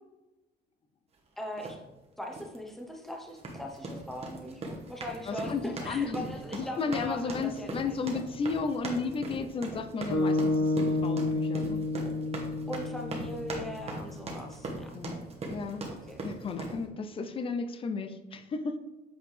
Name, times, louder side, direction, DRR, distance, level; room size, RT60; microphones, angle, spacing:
voice 1, 1.4-1.8 2.2-8.0 12.7-14.9 15.9-16.3, left 1 dB, ahead, 1 dB, 0.9 m, -40 dB
sound 1, 1.6-1.8 2.3-2.6 3.3-16.8, right 2 dB, 35° right, 1.3 m, -39 dB
voice 2, 5.3-6.3 6.5-11.8 14.9-15.2 15.5-15.9 16.2-18.8, left 4 dB, 30° left, 8 dB, 0.6 m, -33 dB
sound 2, 10.1-14.4, left 2 dB, 70° left, 0.8 m, -30 dB
7.9 x 4.2 x 3.3 m, 1.1 s
cardioid pair, 110°, 17 cm